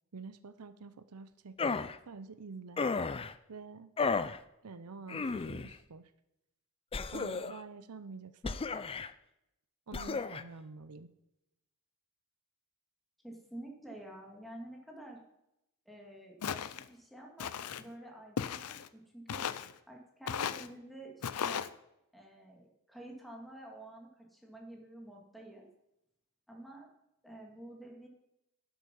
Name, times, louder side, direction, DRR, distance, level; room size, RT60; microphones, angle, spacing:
voice 1, 0.1-2.9 3.5-3.9 4.6-6.1 7.1-8.6 9.9-11.1, right 4 dB, 85° right, 13 dB, 0.7 m, -48 dB
sound 1, 1.6-2.0 2.8-3.3 4.0-4.4 5.1-5.7 6.9-7.6 8.4-9.1 9.9-10.4, left 4 dB, 25° left, 0.4 m, -33 dB
voice 2, 13.2-15.2 15.9-19.4 19.9-21.6 22.1-25.7 26.5-26.9 27.2-28.1, right 1 dB, ahead, 0 dB, 2.3 m, -49 dB
Walk footsteps, 16.4-16.9 17.4-17.8 18.4-18.9 19.3-19.7 20.3-20.7 21.2-21.7, left 7 dB, 85° left, 0.5 m, -36 dB
11.5 x 7.7 x 5.4 m, 0.85 s
head